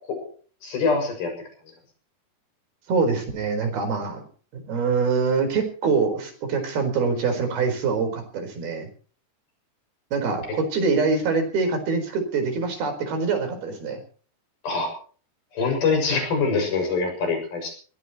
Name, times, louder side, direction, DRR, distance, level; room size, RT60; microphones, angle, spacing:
voice 1, 0.6-1.3 14.6-14.9 15.5-17.7, left 4 dB, 65° left, 4 dB, 8.4 m, -24 dB
voice 2, 2.9-4.2 4.5-8.9 10.1-14.0, right 4 dB, 70° right, 6 dB, 6.4 m, -24 dB
22.5 x 19.0 x 3.1 m, 0.42 s
omnidirectional pair, 4.6 m